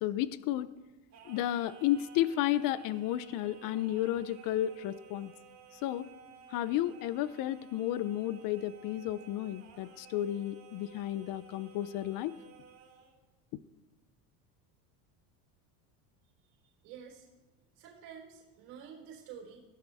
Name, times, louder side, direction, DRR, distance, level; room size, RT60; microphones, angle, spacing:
voice 1, 0.0-0.7 1.3-5.3 5.8-6.1 6.5-12.3, left 13 dB, 45° left, 15 dB, 0.7 m, -32 dB
Singing, 1.1-13.2, right 7 dB, 35° right, 4.1 m, -56 dB
voice 2, 16.5-17.3 17.8-19.6, right 7 dB, 70° right, -1 dB, 4.4 m, -50 dB
21.5 x 16.5 x 3.5 m, 1.1 s
cardioid pair, 140°, 45 cm